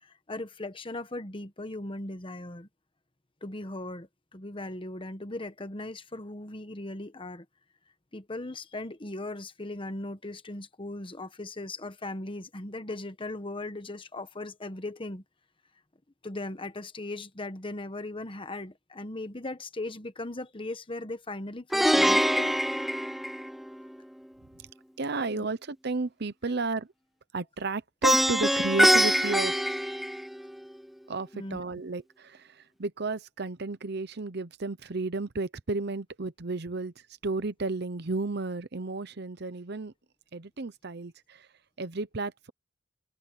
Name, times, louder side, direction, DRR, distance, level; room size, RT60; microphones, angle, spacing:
voice 1, 0.0-2.7 3.4-7.4 8.1-15.2 16.2-22.5 25.3-25.5 31.3-31.6, left 2 dB, 25° left, 1.2 m, -38 dB
Plucked string instrument, 21.7-23.9 28.0-30.6, equal, ahead, 0.4 m, -24 dB
voice 2, 25.0-26.9 27.3-29.5 31.1-36.9 37.2-39.9 40.3-41.5 41.8-42.5, right 3 dB, 60° right, 0.8 m, -33 dB
head